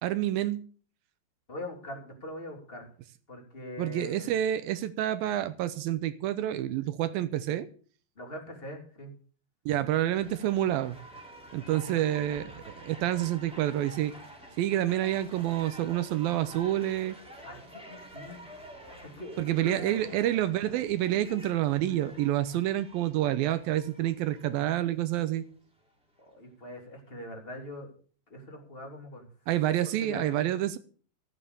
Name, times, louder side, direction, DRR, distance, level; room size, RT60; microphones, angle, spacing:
voice 1, 0.0-0.6 3.8-7.7 9.7-11.0 11.5-14.1 14.6-17.2 19.4-25.4 29.5-30.8, right 13 dB, 75° right, 2.4 m, -28 dB
voice 2, 1.5-2.9 3.3-4.3 8.2-9.1 11.6-12.0 17.4-18.4 19.0-20.2 26.2-27.9 28.3-29.3 30.0-30.4, left 1 dB, 15° left, 2.8 m, -42 dB
sound 1, 10.1-25.2 25.8-25.9, right 1 dB, ahead, 2.9 m, -49 dB
15.5 x 8.7 x 6.8 m
omnidirectional pair, 4.5 m